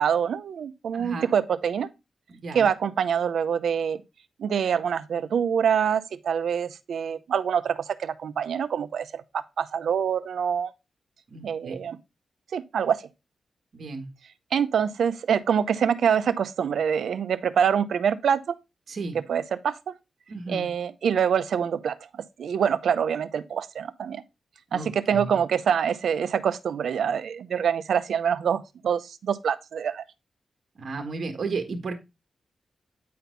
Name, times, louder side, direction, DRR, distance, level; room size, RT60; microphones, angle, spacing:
voice 1, 0.0-1.9 2.5-4.0 4.4-10.7 11.4-12.0 12.5-13.0 14.5-18.5 19.3-19.9 20.5-24.2 24.7-30.0, right 7 dB, 85° right, 0.6 m, -25 dB
voice 2, 0.9-1.3 2.3-2.7 11.3-11.7 13.7-14.1 18.9-19.2 20.3-20.7 24.7-25.4 30.8-31.9, right 4 dB, 55° right, 1.5 m, -34 dB
9.3 x 4.4 x 3.9 m
wide cardioid pair, 115°, 0 cm